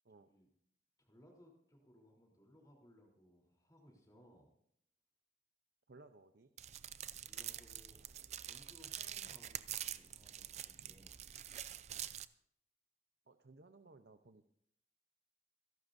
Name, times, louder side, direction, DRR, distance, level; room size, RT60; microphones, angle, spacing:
voice 1, 0.1-0.5 1.0-4.5 7.1-8.0 8.4-11.2, equal, 20° left, -1 dB, 3.5 m, -64 dB
voice 2, 5.9-6.5 13.3-14.4, right 3 dB, 70° right, 8 dB, 0.7 m, -60 dB
sound 1, 6.6-12.2, right 11 dB, 40° right, 0.5 m, -46 dB
27.0 x 11.5 x 2.7 m, 0.70 s
head